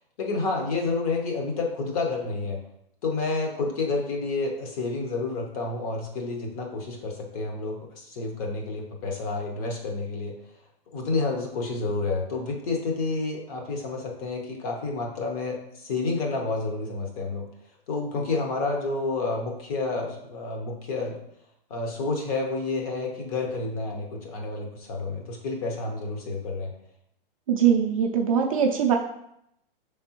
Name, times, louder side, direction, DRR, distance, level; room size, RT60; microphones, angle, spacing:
voice 1, 0.2-2.6 3.0-10.3 10.9-17.4 17.9-21.2 21.7-26.7, left 3 dB, 40° left, 1 dB, 0.9 m, -29 dB
voice 2, 27.5-28.9, right 8 dB, 35° right, 2 dB, 0.4 m, -21 dB
5.3 x 3.4 x 2.9 m, 0.77 s
hypercardioid pair, 150°, 29 cm